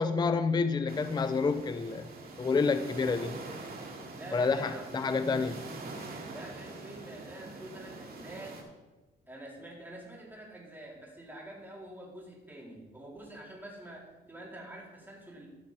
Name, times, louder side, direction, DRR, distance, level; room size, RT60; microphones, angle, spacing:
voice 1, 0.0-2.1 2.4-3.3 4.3-5.6, left 4 dB, 20° left, 11 dB, 0.5 m, -28 dB
sound 1, 0.9-8.6, right 3 dB, 50° right, 2.2 m, -44 dB
voice 2, 4.1-5.0 6.3-8.6 9.3-15.5, right 1 dB, 10° right, -3 dB, 3.6 m, -46 dB
14.5 x 5.8 x 4.7 m, 1.2 s
cardioid pair, 90°, 20 cm